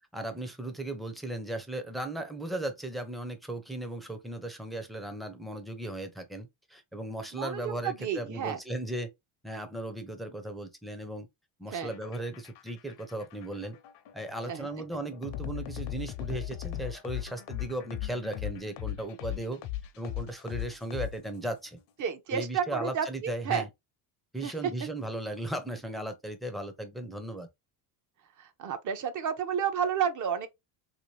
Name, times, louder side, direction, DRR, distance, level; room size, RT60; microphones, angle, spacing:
voice 1, 0.1-9.1 9.4-11.3 11.6-13.8 14.1-19.6 20.0-21.8 22.3-23.7 24.3-27.5, right 1 dB, ahead, 0.5 m, -36 dB
voice 2, 7.3-8.6 11.7-11.9 14.5-14.7 22.0-23.6 24.4-24.5 28.4-30.5, right 8 dB, 40° right, 0.7 m, -31 dB
sound 1, 11.8-21.6, left 14 dB, 60° left, 0.7 m, -38 dB
3.0 x 2.9 x 3.0 m
cardioid pair, 110°, 47 cm